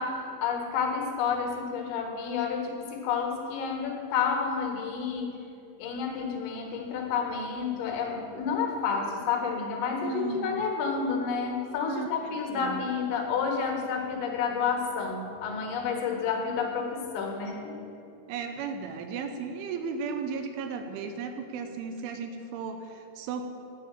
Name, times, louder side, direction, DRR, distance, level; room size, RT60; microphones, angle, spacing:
voice 1, 0.0-5.4 5.8-17.8, left 6 dB, 70° left, 1 dB, 3.8 m, -30 dB
voice 2, 10.0-10.6 11.8-12.8 18.3-23.4, right 5 dB, 80° right, 6 dB, 3.1 m, -35 dB
11.0 x 8.7 x 8.6 m, 2.8 s
omnidirectional pair, 5.8 m